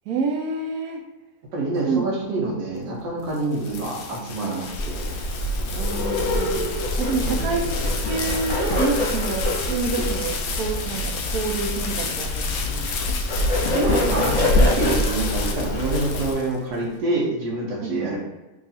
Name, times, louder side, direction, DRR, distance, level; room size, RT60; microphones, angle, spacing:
voice 1, 0.1-1.0 1.8-2.0 5.7-7.8 8.1-13.1 17.8-18.2, right 4 dB, 70° right, 3 dB, 1.0 m, -28 dB
voice 2, 1.5-5.0 7.2-7.6 13.7-18.2, right 2 dB, 90° right, -3 dB, 1.5 m, -26 dB
sound 1, 3.0-16.8, left 5 dB, 70° left, 1.0 m, -33 dB
Bird, 4.7-16.3, left 1 dB, 50° left, 1.4 m, -25 dB
3.6 x 2.4 x 4.1 m, 1.1 s
omnidirectional pair, 1.8 m